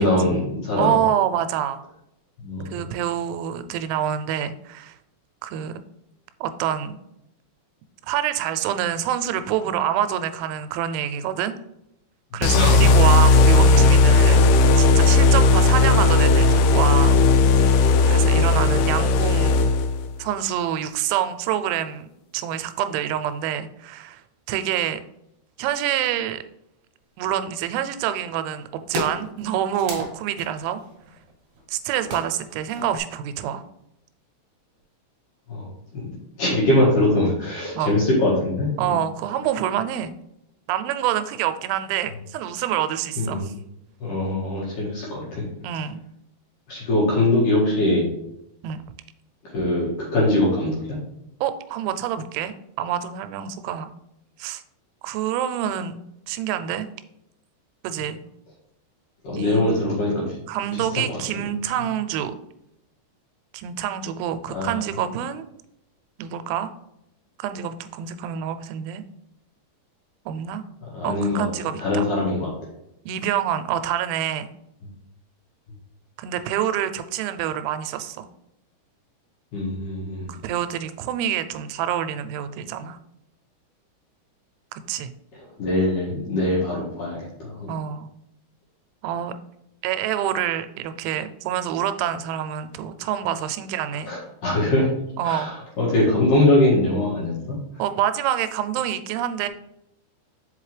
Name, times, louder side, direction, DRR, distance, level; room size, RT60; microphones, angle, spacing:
voice 1, 0.0-0.9 2.4-2.8 12.3-12.9 35.5-36.1 36.4-38.9 43.2-43.5 44.0-45.4 46.7-48.0 49.4-51.0 59.2-60.3 60.9-61.2 64.5-64.8 70.9-71.5 71.8-72.5 79.5-80.3 85.6-87.7 94.1-94.9 95.2-97.6, left 1 dB, 60° left, -5 dB, 2.4 m, -22 dB
voice 2, 0.8-1.8 2.7-5.0 5.4-5.8 6.4-7.0 8.0-11.6 12.3-14.5 14.8-17.2 17.5-17.7 18.0-19.7 20.2-24.2 24.5-25.0 25.6-26.4 27.2-30.8 31.7-33.6 37.8-38.0 38.8-40.1 40.7-43.5 45.6-46.0 48.6-48.8 51.4-53.9 54.4-54.6 55.0-56.0 56.3-56.9 57.8-58.2 59.4-59.9 60.5-62.3 63.5-65.4 66.2-66.7 67.4-69.0 70.3-70.6 71.0-72.1 73.1-74.5 76.2-78.3 80.3-83.0 84.7-85.1 87.7-88.1 89.0-89.3 89.8-94.1 95.2-95.6 97.8-99.5, right 10 dB, 90° right, 11 dB, 3.0 m, -26 dB
sound 1, 12.4-20.1, left 3 dB, 85° left, 2.3 m, -16 dB
sound 2, 27.2-27.9 28.5-28.6 28.8-33.0, equal, 60° right, 2.2 m, -36 dB
5.7 x 5.3 x 3.2 m, 0.82 s
omnidirectional pair, 5.3 m